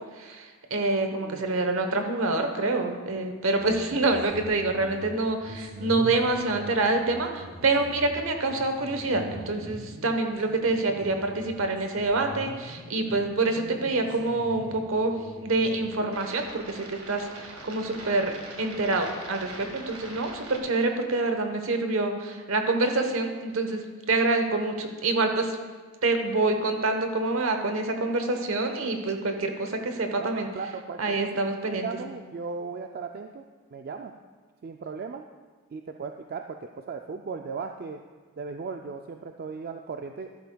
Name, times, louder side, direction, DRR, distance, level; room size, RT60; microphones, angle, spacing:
voice 1, 0.0-15.2 15.4-25.6 26.0-30.5 31.0-31.9, right 2 dB, 65° right, 5 dB, 1.0 m, -26 dB
sound 1, 3.6-20.6, right 1 dB, 85° right, 1.8 m, -43 dB
voice 2, 30.2-31.3 31.8-33.4 33.7-34.1 34.6-35.2 35.7-38.0 38.4-40.3, right 5 dB, 45° right, 5 dB, 0.3 m, -37 dB
13.0 x 11.5 x 2.3 m, 1.4 s
head